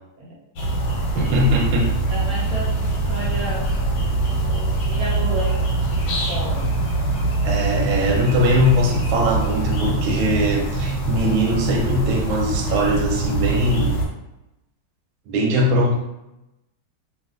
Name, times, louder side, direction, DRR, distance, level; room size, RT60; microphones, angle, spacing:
sound 1, 0.6-14.0, right 2 dB, 90° left, 1.5 m, -23 dB
voice 1, 1.1-1.9 7.4-14.0 15.3-16.0, equal, 90° right, 1 dB, 1.4 m, -21 dB
voice 2, 2.1-3.7 4.9-6.7, right 2 dB, 65° right, -5 dB, 0.9 m, -32 dB
3.2 x 2.7 x 2.4 m, 0.93 s
omnidirectional pair, 2.2 m